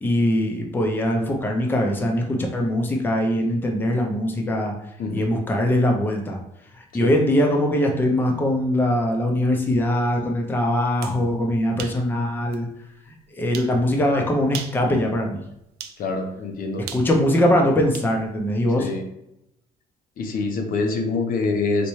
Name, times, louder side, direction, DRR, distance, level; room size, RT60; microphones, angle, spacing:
voice 1, 0.0-4.7 5.1-6.4 6.7-12.7 13.1-15.4 16.9-18.9, left 1 dB, 10° left, 1 dB, 0.5 m, -22 dB
voice 2, 5.0-5.3 7.0-7.2 16.0-16.9 18.8-19.0 20.2-21.9, left 3 dB, 55° left, 4 dB, 0.6 m, -25 dB
Snapping fingers, 10.8-11.2 11.8-12.0 12.5-12.6 13.5-13.8 14.4-14.8 15.8-16.0 16.9-18.1, right 9 dB, 70° right, 0.4 m, -36 dB
4.1 x 2.2 x 3.1 m, 0.82 s
cardioid pair, 110°, 17 cm